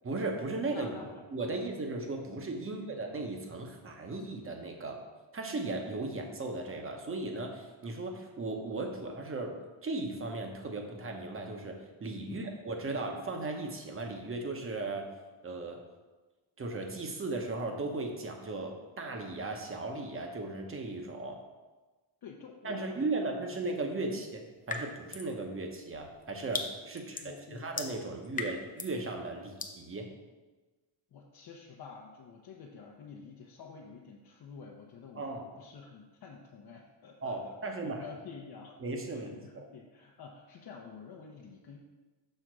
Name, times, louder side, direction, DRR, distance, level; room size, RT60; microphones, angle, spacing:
voice 1, 0.0-0.9 1.3-5.0 5.3-15.1 15.4-15.8 16.6-21.4 22.6-30.1 35.2-35.5 37.2-38.1 38.8-39.7, right 2 dB, 25° right, 3 dB, 0.9 m, -37 dB
voice 2, 0.6-1.2 1.5-1.7 2.6-3.0 12.3-12.5 22.2-23.2 24.1-24.3 26.9-27.6 31.1-35.3 35.6-38.8 39.1-41.8, left 5 dB, 50° left, -1 dB, 0.8 m, -49 dB
sound 1, 24.7-25.3 25.7-29.0 29.6-29.8, left 4 dB, 20° left, 0.4 m, -39 dB
6.6 x 3.5 x 6.1 m, 1.2 s
cardioid pair, 140°, 48 cm